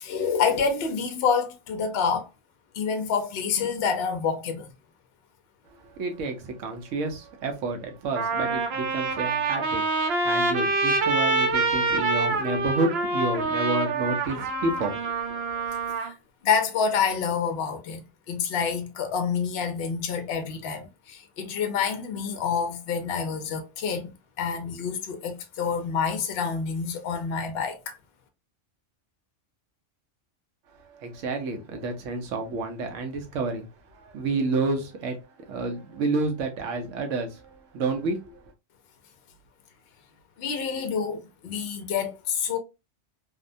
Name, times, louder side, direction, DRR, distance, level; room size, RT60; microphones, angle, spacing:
voice 1, 0.0-2.3 2.7-4.7 16.0-16.1 16.4-18.0 18.3-24.1 24.4-28.0 40.4-42.6, left 6 dB, 65° left, 0.7 m, -27 dB
voice 2, 5.7-15.9 30.8-35.2 35.5-38.4, right 3 dB, 80° right, 1.1 m, -30 dB
Trumpet, 7.4-7.5 8.1-16.1, right 3 dB, 65° right, 0.8 m, -26 dB
2.7 x 2.1 x 2.5 m
omnidirectional pair, 1.3 m